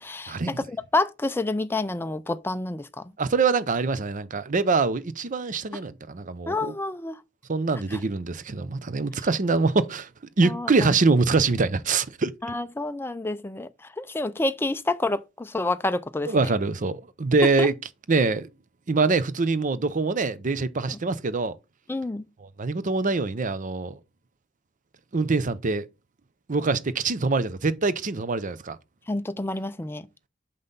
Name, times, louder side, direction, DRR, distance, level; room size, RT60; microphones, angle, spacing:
voice 1, 0.0-3.0 6.5-7.2 7.9-8.0 10.4-10.9 12.4-13.7 14.0-16.5 17.4-17.7 20.9-21.0 21.9-22.3 29.1-30.1, left 2 dB, 10° left, 0.4 m, -28 dB
voice 2, 3.2-6.7 7.5-10.1 10.4-12.3 16.3-17.7 18.1-18.5 18.9-21.5 22.4-24.0 25.1-25.9 26.5-28.8, right 3 dB, 40° right, 0.6 m, -24 dB
6.7 x 5.5 x 4.0 m
head